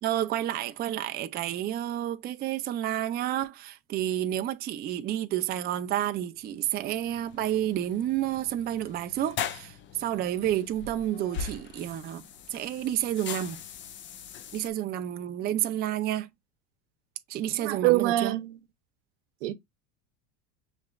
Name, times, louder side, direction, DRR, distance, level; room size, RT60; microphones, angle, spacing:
voice 1, 0.0-12.2 12.5-13.6 14.5-16.3 17.3-18.4, right 12 dB, 25° right, 0.4 m, -30 dB
sound 1, 6.5-14.7, left 7 dB, 30° left, 0.5 m, -41 dB
voice 2, 17.6-18.6 19.4-19.5, right 16 dB, 80° right, 0.8 m, -25 dB
5.8 x 3.1 x 2.3 m
supercardioid pair, 115°, 36 cm